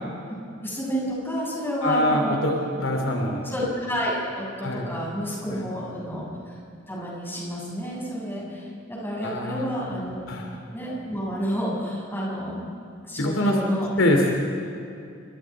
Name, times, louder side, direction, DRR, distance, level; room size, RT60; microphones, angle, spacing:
voice 1, 0.6-2.4 3.4-6.3 6.9-10.2 10.7-12.6 13.1-13.9, equal, 10° left, -4 dB, 7.0 m, -30 dB
voice 2, 1.8-3.5 4.6-4.9 5.5-5.7 9.2-9.9 10.3-10.5 13.2-13.6 14.0-14.4, left 1 dB, 80° left, 2 dB, 3.1 m, -24 dB
27.0 x 24.5 x 4.9 m, 2.6 s
head